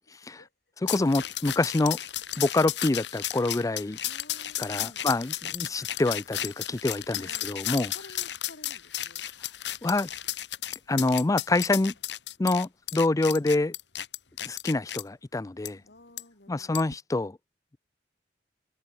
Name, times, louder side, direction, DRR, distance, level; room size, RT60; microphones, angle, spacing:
voice 1, 0.8-2.0 2.4-4.0 4.6-7.9 9.8-10.1 10.9-11.9 12.4-13.7 14.4-15.8 16.5-17.4, left 2 dB, 20° left, 0.4 m, -26 dB
sound 1, 0.9-15.0 15.6-15.7 16.2-16.3 16.7-16.9, left 12 dB, 85° left, 2.4 m, -34 dB
voice 2, 4.0-5.1 7.1-9.2 15.8-16.9, left 1 dB, 65° left, 4.5 m, -52 dB
head